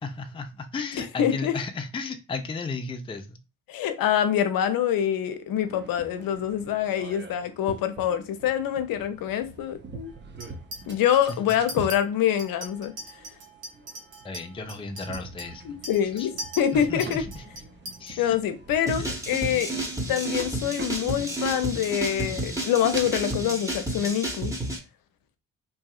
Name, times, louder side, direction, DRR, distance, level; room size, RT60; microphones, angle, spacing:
voice 1, 0.0-3.4 14.2-15.8 16.2-16.3 16.7-17.4 18.0-18.4 18.9-19.0, left 4 dB, 15° left, 0.4 m, -34 dB
voice 2, 1.0-1.5 3.7-10.1 10.9-12.9 15.6-17.2 18.2-19.8 20.1-24.5, left 10 dB, 60° left, 0.6 m, -25 dB
sound 1, 5.6-24.1, right 4 dB, 30° right, 0.7 m, -45 dB
Chink clink, 10.4-11.0 11.3-12.0 12.4-18.1, right 1 dB, 70° right, 1.0 m, -40 dB
sound 2, 18.9-24.8, right 1 dB, 10° right, 1.0 m, -31 dB
2.7 x 2.6 x 2.4 m
hypercardioid pair, 45°, 38 cm